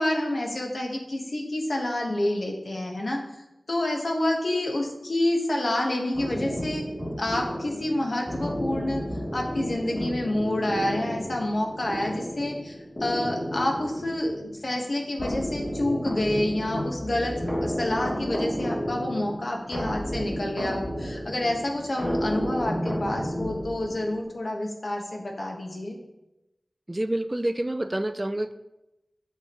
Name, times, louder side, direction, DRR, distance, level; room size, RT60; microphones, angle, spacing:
voice 1, 0.0-3.2 3.7-6.8 7.2-9.0 9.3-25.9, left 1 dB, 70° left, 1 dB, 1.3 m, -28 dB
sound 1, 6.1-24.2, equal, 30° left, 2.8 m, -32 dB
voice 2, 26.9-28.5, right 1 dB, 30° right, 10 dB, 0.4 m, -28 dB
8.0 x 7.1 x 3.0 m, 0.94 s
wide cardioid pair, 55°, 0 cm